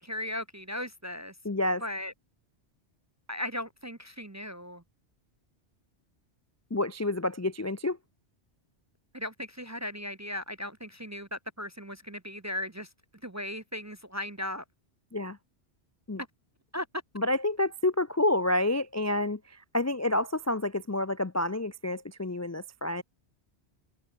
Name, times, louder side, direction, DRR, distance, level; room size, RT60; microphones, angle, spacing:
voice 1, 0.0-1.3 1.8-2.1 3.3-4.8 9.1-12.9 13.2-14.6 16.7-16.9, left 1 dB, 20° right, 0.6 m, -37 dB
voice 2, 1.4-1.8 6.7-8.0 15.1-15.4 16.1-16.2 17.2-23.0, left 2 dB, 20° left, 0.5 m, -29 dB
omnidirectional pair, 1.1 m